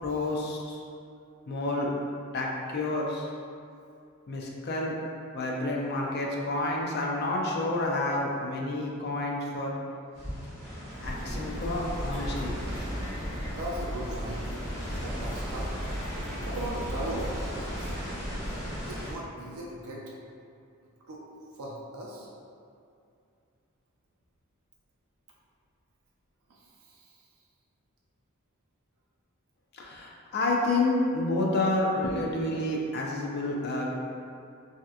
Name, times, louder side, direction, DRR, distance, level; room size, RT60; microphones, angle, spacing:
voice 1, 0.0-0.8 1.5-1.9 2.3-3.3 4.3-5.0 5.3-9.8 11.0-12.5 29.7-33.9, left 2 dB, 45° left, -1 dB, 0.4 m, -29 dB
sound 1, 10.1-19.1, equal, 5° right, 1.5 m, -39 dB
sound 2, 11.0-19.1, equal, 20° left, 0.9 m, -36 dB
voice 2, 13.5-14.5 15.0-15.7 16.4-18.0 18.9-20.0 21.1-21.2 21.5-22.3 26.5-27.2, right 1 dB, 75° right, -4 dB, 0.4 m, -38 dB
3.3 x 2.7 x 2.3 m, 2.4 s
head